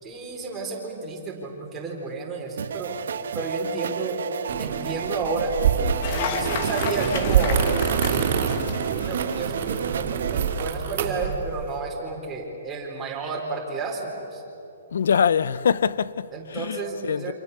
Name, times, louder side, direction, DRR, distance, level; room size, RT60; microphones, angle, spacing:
voice 1, 0.0-3.0 3.3-4.2 4.6-5.6 6.1-8.3 9.0-14.4 16.3-17.3, right 3 dB, 10° right, 4.1 m, -31 dB
sound 1, 2.6-10.7, right 7 dB, 70° right, 1.2 m, -32 dB
sound 2, 4.5-11.6, right 7 dB, 45° right, 3.2 m, -26 dB
Cheering / Applause, 6.0-9.7, left 6 dB, 35° left, 1.9 m, -32 dB
voice 2, 14.9-17.3, left 7 dB, 70° left, 0.7 m, -24 dB
29.0 x 27.0 x 6.8 m
hypercardioid pair, 170°, 0 cm